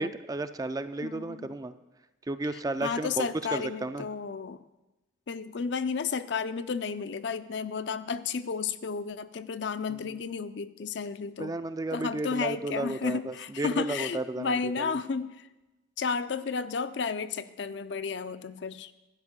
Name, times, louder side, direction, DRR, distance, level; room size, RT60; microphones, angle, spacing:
voice 1, 0.0-1.8 2.3-4.1 10.0-10.2 11.4-15.0, right 2 dB, 20° right, 11 dB, 0.3 m, -33 dB
voice 2, 1.0-1.5 2.8-4.6 5.3-11.5 11.9-15.5 16.0-18.9, left 5 dB, 65° left, 12 dB, 0.5 m, -32 dB
12.0 x 5.3 x 8.8 m, 1.0 s
head